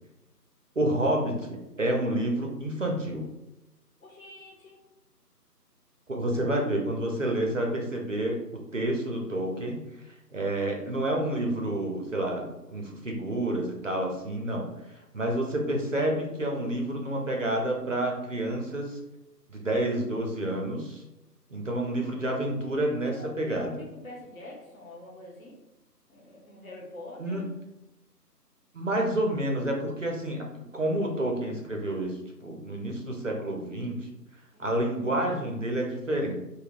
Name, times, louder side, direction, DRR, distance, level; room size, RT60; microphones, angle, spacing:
voice 1, 0.8-3.3 6.1-19.0 19.5-21.0 21.5-23.8 27.2-27.4 28.7-30.4 30.7-34.1 34.6-36.3, right 1 dB, 50° right, 0 dB, 0.5 m, -29 dB
voice 2, 4.0-4.7 6.3-6.4 21.8-22.2 23.0-23.4 23.8-25.6 26.1-27.6 34.5-35.2, left 2 dB, 55° left, -3 dB, 1.1 m, -46 dB
3.4 x 2.1 x 2.4 m, 0.95 s
figure-of-eight pair, 160°, 49 cm